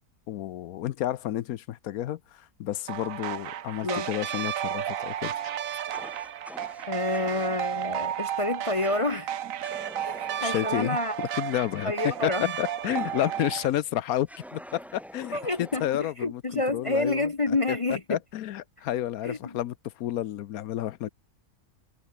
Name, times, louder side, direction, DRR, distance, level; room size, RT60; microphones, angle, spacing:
voice 1, 0.3-5.3 10.4-12.3 12.6-17.3 17.7-17.8 18.1-21.1, left 12 dB, 75° left, 1.1 m, -31 dB
sound 1, 2.9-13.7, right 10 dB, 65° right, 1.2 m, -33 dB
Fire, 5.9-7.5 8.8-9.3 9.6-13.7 14.3-16.1, equal, ahead, 1.1 m, -46 dB
voice 2, 6.9-9.3 10.0-11.2 11.8-12.5 15.3-18.2 19.2-19.6, left 2 dB, 30° left, 0.6 m, -28 dB
omnidirectional pair, 1.6 m